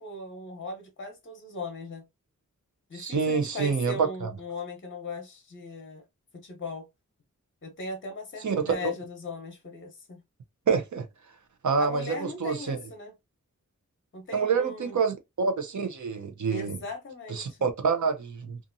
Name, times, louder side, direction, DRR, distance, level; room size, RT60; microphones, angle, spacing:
voice 1, 0.0-2.0 2.9-6.0 6.3-6.8 7.6-10.2 11.8-13.1 14.1-15.0 16.5-17.6, left 3 dB, 40° left, 0.8 m, -38 dB
voice 2, 2.9-4.3 8.4-8.9 10.7-11.1 11.6-12.8 14.3-16.8 17.3-18.6, right 5 dB, 70° right, 0.7 m, -27 dB
2.7 x 2.5 x 2.6 m
wide cardioid pair, 105°, 31 cm